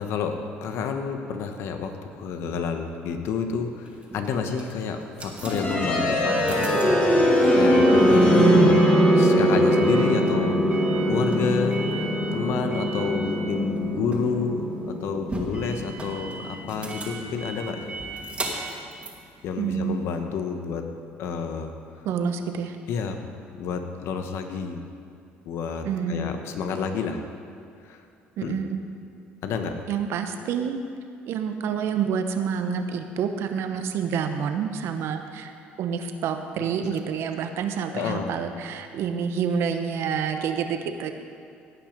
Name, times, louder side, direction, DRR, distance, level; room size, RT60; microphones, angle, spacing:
voice 1, 0.0-8.8 9.1-11.8 12.3-18.0 19.4-20.9 21.2-21.7 22.9-23.2 23.6-24.8 25.5-27.2 27.8-28.0 28.4-28.6 29.4-29.8 37.9-38.3, left 5 dB, 70° left, 6 dB, 1.2 m, -29 dB
sound 1, 3.8-20.2, right 3 dB, 25° right, 2.3 m, -39 dB
sound 2, 5.4-17.3, equal, 30° left, 2.7 m, -21 dB
voice 2, 19.6-20.0 22.0-22.8 25.8-26.3 28.4-28.8 29.9-30.8 31.3-35.5 35.8-41.1, right 7 dB, 70° right, 7 dB, 1.0 m, -28 dB
17.5 x 6.0 x 5.3 m, 2.5 s
supercardioid pair, 85°, 5 cm